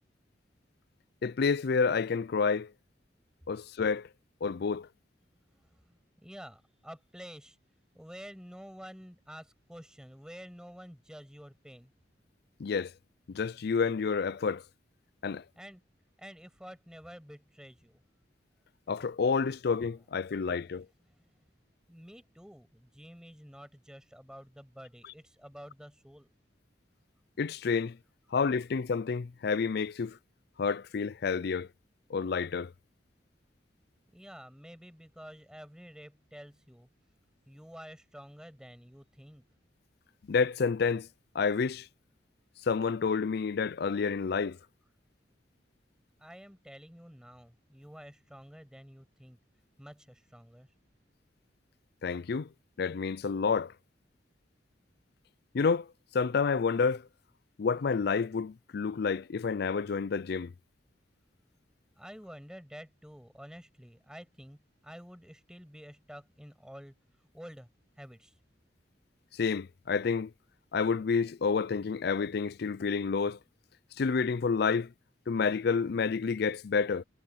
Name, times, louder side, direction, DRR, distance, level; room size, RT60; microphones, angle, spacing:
voice 1, 1.2-2.7 3.5-4.1 4.4-4.9 12.6-12.9 13.3-14.6 15.2-15.4 18.9-20.9 27.4-28.0 28.3-30.2 30.6-31.7 32.1-32.7 40.3-41.1 41.3-41.9 42.7-44.6 52.0-52.5 52.8-53.7 55.5-55.9 56.1-57.0 57.6-60.5 69.3-70.3 70.7-73.4 74.0-74.9 75.3-77.0, left 5 dB, 60° left, 0.4 m, -29 dB
voice 2, 5.5-7.6 7.9-11.9 15.6-15.8 16.2-18.0 21.1-21.2 21.9-26.3 34.1-36.9 37.5-39.5 46.2-49.4 49.8-50.7 62.0-66.9 67.3-67.7 68.0-68.4, equal, 5° right, 6.3 m, -49 dB
head